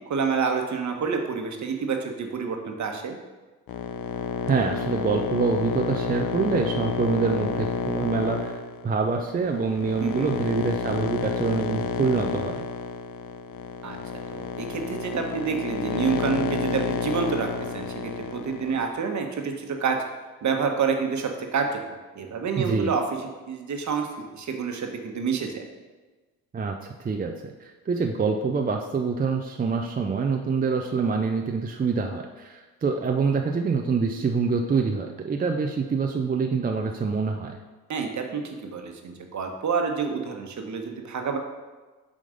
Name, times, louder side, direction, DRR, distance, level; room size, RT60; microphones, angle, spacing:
voice 1, 0.1-3.2 10.0-10.3 13.8-14.0 14.3-17.5 17.7-20.0 20.4-21.8 22.1-23.0 23.5-24.1 24.3-25.6 37.9-41.4, right 5 dB, 45° right, 3 dB, 1.2 m, -28 dB
sound 1, 3.7-18.9, left 6 dB, 60° left, 0.7 m, -30 dB
voice 2, 4.5-12.6 22.6-22.9 26.5-37.6, right 4 dB, 25° right, 3 dB, 0.5 m, -26 dB
7.5 x 3.8 x 5.1 m, 1.3 s
supercardioid pair, 75°, 39 cm